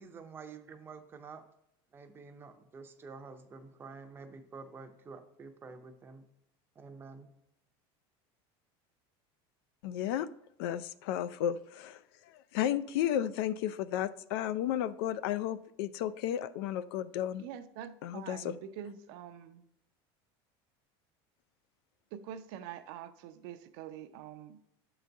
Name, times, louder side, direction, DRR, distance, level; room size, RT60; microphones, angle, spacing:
voice 1, 0.0-1.4 1.9-6.3 6.8-7.3, right 4 dB, 15° right, 6 dB, 0.6 m, -49 dB
voice 2, 9.8-10.3 10.6-17.4 18.0-18.5, left 11 dB, 75° left, 15 dB, 0.4 m, -33 dB
voice 3, 17.4-19.6 22.1-24.6, right 9 dB, 60° right, 10 dB, 0.5 m, -45 dB
7.4 x 4.0 x 4.5 m, 0.78 s
cardioid pair, 160°, 13 cm